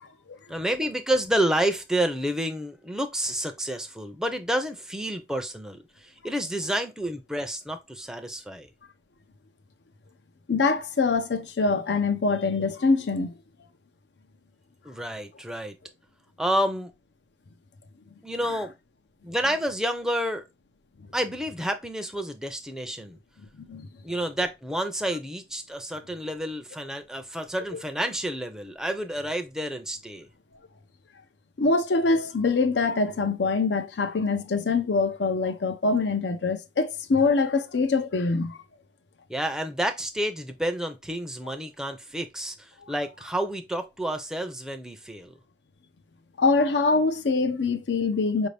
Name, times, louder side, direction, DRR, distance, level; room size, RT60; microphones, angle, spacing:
voice 1, 0.5-8.7 14.8-15.7 16.4-16.9 18.2-18.7 19.2-20.4 21.1-23.2 24.0-30.3 39.3-45.3, right 1 dB, 5° right, 0.5 m, -29 dB
voice 2, 10.5-13.3 23.6-23.9 31.6-38.6 46.4-48.5, left 4 dB, 80° left, 0.6 m, -24 dB
5.0 x 2.6 x 3.3 m
head